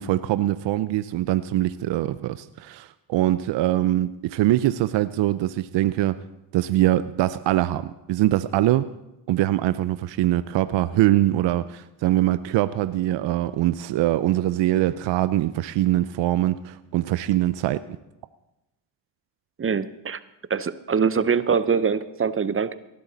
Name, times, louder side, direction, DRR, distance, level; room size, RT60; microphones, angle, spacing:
voice 1, 0.0-6.2 6.5-8.9 9.3-17.8, right 14 dB, 65° right, 0.6 m, -23 dB
voice 2, 19.6-20.2 20.5-22.8, right 6 dB, 30° right, 0.7 m, -23 dB
18.5 x 11.5 x 4.0 m
supercardioid pair, 65°, 48 cm